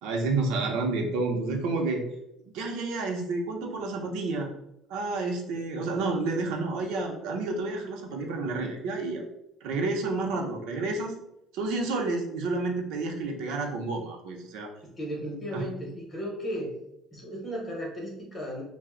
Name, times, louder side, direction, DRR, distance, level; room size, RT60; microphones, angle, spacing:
voice 1, 0.0-2.0 2.5-4.5 4.9-9.2 9.6-11.1 11.5-14.7 15.5-15.7, right 3 dB, 75° right, 2 dB, 0.5 m, -30 dB
voice 2, 14.8-16.7 17.1-18.6, equal, 20° left, -2 dB, 0.7 m, -35 dB
2.5 x 2.0 x 3.6 m, 0.82 s
cardioid pair, 165°, 0 cm